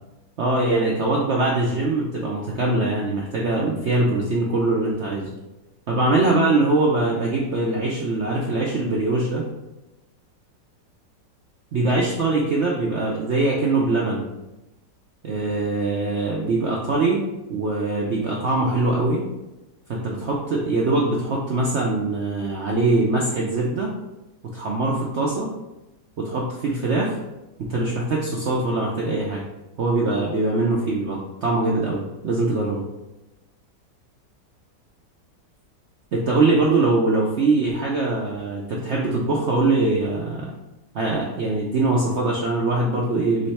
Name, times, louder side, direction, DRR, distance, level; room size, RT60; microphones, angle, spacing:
voice 1, 0.4-5.3 5.9-9.5 11.7-14.3 15.2-17.2 17.5-19.3 19.9-23.9 24.5-25.5 26.2-27.2 27.6-29.4 29.8-32.8 36.1-40.5 40.9-43.5, right 2 dB, 75° right, -2 dB, 0.6 m, -22 dB
3.9 x 3.2 x 4.1 m, 0.99 s
omnidirectional pair, 1.9 m